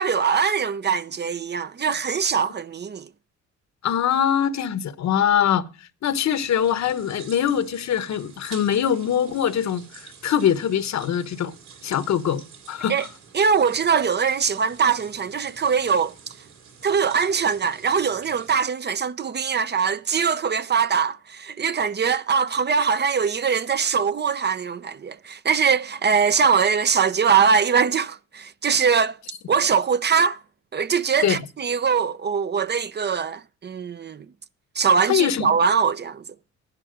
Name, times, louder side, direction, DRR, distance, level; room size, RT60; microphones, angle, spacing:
voice 1, 0.0-3.1 12.9-13.1 13.3-16.1 16.8-29.2 29.5-30.4 30.7-34.3 34.7-36.2, right 6 dB, 35° right, 0.6 m, -22 dB
voice 2, 3.8-5.6 6.0-11.5 11.8-12.9 31.2-31.4 35.1-35.6, left 9 dB, 65° left, 1.1 m, -23 dB
sound 1, 6.3-18.6, right 6 dB, 70° right, 6.0 m, -47 dB
11.0 x 9.8 x 5.1 m
cardioid pair, 90°, 30 cm